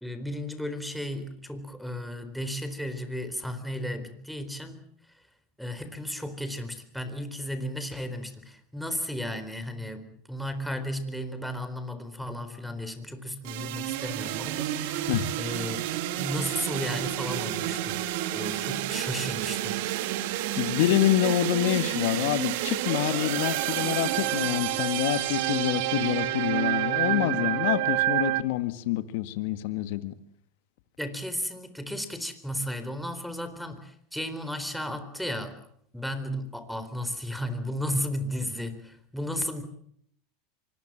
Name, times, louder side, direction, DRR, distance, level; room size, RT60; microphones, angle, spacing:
voice 1, 0.0-4.8 5.6-15.8 16.2-19.8 31.0-35.6 35.9-39.6, equal, ahead, 9 dB, 4.1 m, -34 dB
sound 1, 13.4-28.4, right 14 dB, 70° right, 2.1 m, -29 dB
voice 2, 20.6-30.1, left 13 dB, 70° left, 12 dB, 1.7 m, -27 dB
25.0 x 20.5 x 7.5 m, 0.67 s
supercardioid pair, 110°, 0 cm